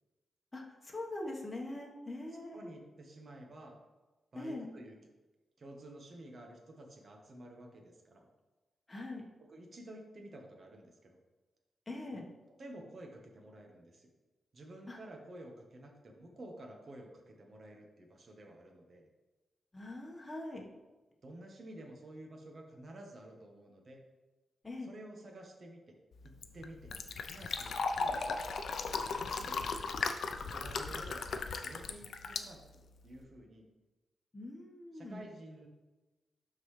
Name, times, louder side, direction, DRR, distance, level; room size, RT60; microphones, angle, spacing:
voice 1, 0.5-2.8 4.3-4.7 8.9-9.2 11.9-12.2 14.9-15.0 19.7-20.6 24.6-24.9 34.3-35.2, left 2 dB, 20° left, -1 dB, 1.3 m, -42 dB
voice 2, 2.5-3.8 4.3-5.0 5.6-8.3 9.4-11.2 12.6-14.1 14.5-19.1 21.2-24.0 24.9-26.0 26.2-26.9 27.2-28.3 29.2-29.6 30.2-33.7 34.9-35.7, right 1 dB, 50° right, 1 dB, 1.2 m, -51 dB
Fill (with liquid), 26.1-33.2, left 4 dB, 75° left, 0.5 m, -37 dB
12.0 x 4.0 x 3.3 m, 1.1 s
cardioid pair, 85°, 0 cm